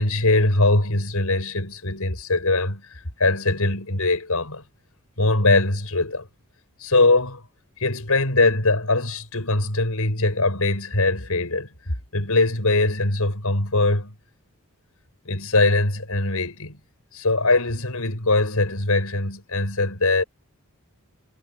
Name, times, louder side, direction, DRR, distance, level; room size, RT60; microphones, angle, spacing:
voice 1, 0.0-4.6 5.2-6.3 6.8-7.4 7.8-14.2 15.3-16.8 17.1-20.2, left 2 dB, 85° left, 5.3 m, -22 dB
head